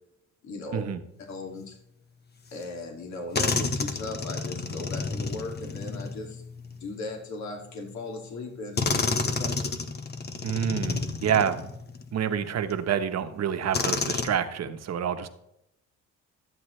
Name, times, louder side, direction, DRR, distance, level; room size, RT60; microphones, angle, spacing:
voice 1, 0.4-0.8 1.3-1.8 2.5-6.4 6.7-9.7, left 2 dB, 65° left, 1 dB, 2.6 m, -38 dB
sound 1, 2.6-2.7 3.3-7.0 7.9-8.0 8.8-12.1 12.7-12.8 13.7-14.3, left 4 dB, 35° left, 1.2 m, -30 dB
voice 2, 10.4-11.7 12.1-15.3, right 8 dB, 60° right, 8 dB, 1.1 m, -28 dB
13.5 x 8.6 x 3.3 m, 0.76 s
cardioid pair, 90°, 30 cm